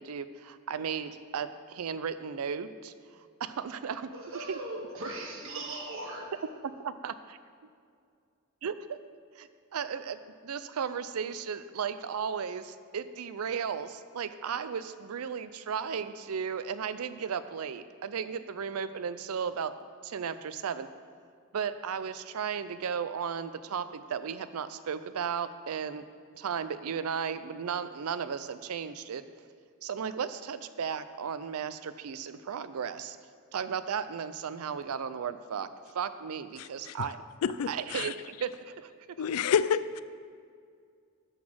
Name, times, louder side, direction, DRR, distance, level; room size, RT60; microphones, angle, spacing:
voice 1, 0.0-2.9 3.4-4.1 4.5-4.6 6.6-7.1 8.6-9.0 9.4-19.7 20.0-20.9 21.5-26.0 26.3-29.2 29.8-33.2 33.5-35.7 35.9-37.2 37.7-38.9, right 7 dB, 85° right, 13 dB, 0.4 m, -35 dB
voice 2, 4.1-6.3, right 2 dB, 70° right, 0 dB, 1.6 m, -39 dB
voice 3, 36.6-36.9 37.4-38.1 39.2-40.0, left 7 dB, 80° left, 15 dB, 0.4 m, -29 dB
11.5 x 4.0 x 6.3 m, 2.3 s
head